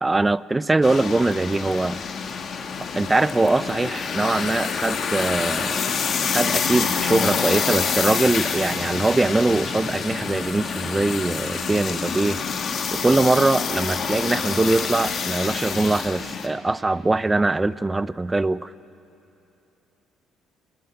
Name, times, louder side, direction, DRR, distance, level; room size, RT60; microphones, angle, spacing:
voice 1, 0.0-2.0 2.9-5.9 6.2-12.4 12.9-18.7, right 2 dB, 20° right, 18 dB, 0.6 m, -22 dB
sound 1, 0.8-16.5, left 6 dB, 55° left, 2.3 m, -27 dB
30.0 x 17.5 x 8.8 m, 2.9 s
hypercardioid pair, 60°, 0 cm